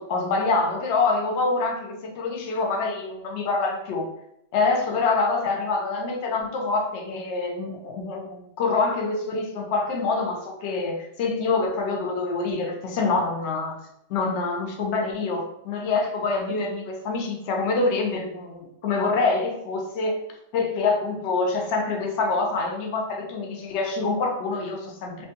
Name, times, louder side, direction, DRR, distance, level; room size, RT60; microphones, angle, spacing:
voice 1, 0.0-4.1 4.5-13.8 14.1-20.2 20.5-25.3, left 3 dB, 65° left, 1 dB, 0.8 m, -26 dB
3.1 x 2.2 x 2.9 m, 0.79 s
omnidirectional pair, 1.4 m